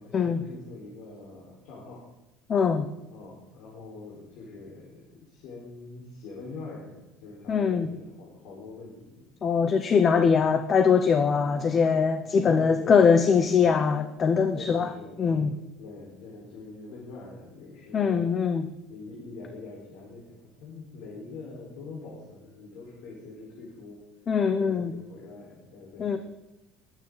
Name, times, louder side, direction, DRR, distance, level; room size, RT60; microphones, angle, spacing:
voice 1, 0.0-2.0 3.1-9.3 12.2-13.5 14.5-15.5 15.8-18.3 18.9-24.0 24.6-26.2, left 3 dB, 75° left, -4 dB, 4.6 m, -43 dB
voice 2, 2.5-2.9 7.5-7.9 9.4-14.9 15.2-15.5 17.9-18.7 24.3-24.9 26.0-26.2, left 6 dB, 25° left, 9 dB, 0.7 m, -22 dB
21.5 x 9.1 x 4.0 m, 0.96 s
cardioid pair, 160°, 0 cm